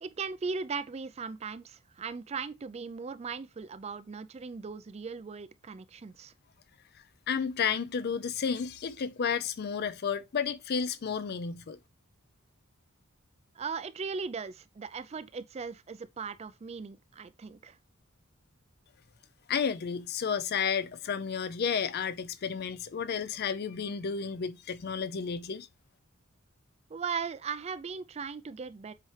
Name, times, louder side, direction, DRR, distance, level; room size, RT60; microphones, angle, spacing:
voice 1, 0.0-6.3 13.6-17.8 26.9-28.9, right 5 dB, 30° right, 0.4 m, -38 dB
voice 2, 7.3-11.8 19.5-25.7, left 6 dB, 45° left, 0.4 m, -32 dB
7.5 x 4.3 x 3.2 m
head